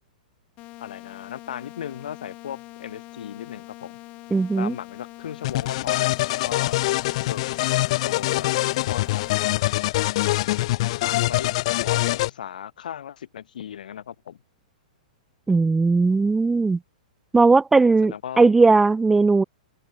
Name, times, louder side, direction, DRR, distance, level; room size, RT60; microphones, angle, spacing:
sound 1, 0.6-9.6, left 21 dB, 30° left, 6.6 m, -43 dB
voice 1, 0.8-4.0 4.6-6.8 7.2-8.5 8.9-9.2 11.0-14.4 18.0-18.5, left 9 dB, 75° left, 3.9 m, -36 dB
voice 2, 4.3-4.7 15.5-16.8 17.3-19.4, right 3 dB, 5° right, 0.4 m, -18 dB
sound 2, 5.4-12.3, left 18 dB, 45° left, 1.3 m, -24 dB
open air
hypercardioid pair, 160°, 4 cm